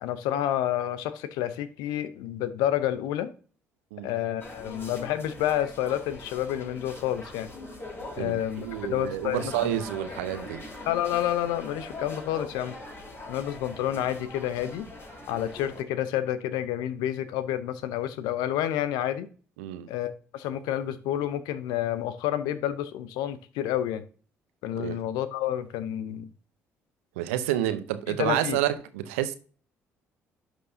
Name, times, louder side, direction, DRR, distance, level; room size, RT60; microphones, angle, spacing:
voice 1, 0.0-3.3 4.0-7.5 8.2-9.7 10.9-12.8 13.3-14.9 15.3-19.3 19.9-24.0 24.6-26.3 28.1-28.6, left 11 dB, 70° left, 0.8 m, -29 dB
sound 1, 4.4-15.8, left 2 dB, 35° left, 4.0 m, -42 dB
voice 2, 8.2-10.6 19.6-19.9 24.8-25.0 27.2-29.4, right 12 dB, 80° right, 0.7 m, -29 dB
11.5 x 6.4 x 2.8 m
hypercardioid pair, 50°, 7 cm